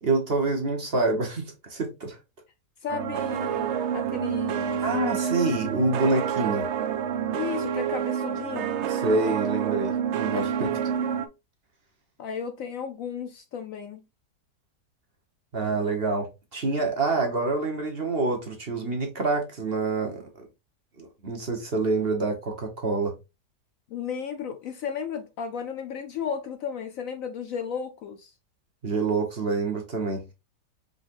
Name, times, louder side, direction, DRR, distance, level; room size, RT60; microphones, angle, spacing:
voice 1, 0.0-2.2 4.8-6.7 8.9-10.8 15.5-20.5 21.0-23.1 28.8-30.2, right 3 dB, 40° right, 1.1 m, -27 dB
voice 2, 2.8-4.8 7.3-8.7 12.2-14.0 23.9-28.3, left 7 dB, 65° left, 0.9 m, -34 dB
sound 1, 2.9-11.3, right 8 dB, 80° right, 0.6 m, -28 dB
4.9 x 4.0 x 2.5 m
omnidirectional pair, 1.8 m